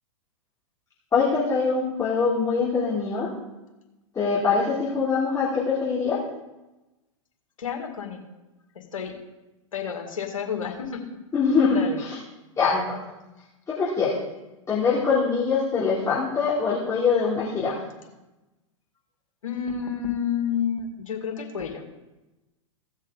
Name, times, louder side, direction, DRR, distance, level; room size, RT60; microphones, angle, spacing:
voice 1, 1.1-3.3 4.1-6.3 11.3-12.2 12.6-13.0 13.8-14.2 14.7-17.8, left 5 dB, 15° left, -8 dB, 2.9 m, -23 dB
voice 2, 7.6-8.2 8.8-9.1 9.7-11.1 11.7-12.0 19.4-21.8, left 7 dB, 75° left, 2 dB, 2.1 m, -30 dB
17.0 x 6.5 x 3.8 m, 1.0 s
figure-of-eight pair, 100°, 17 cm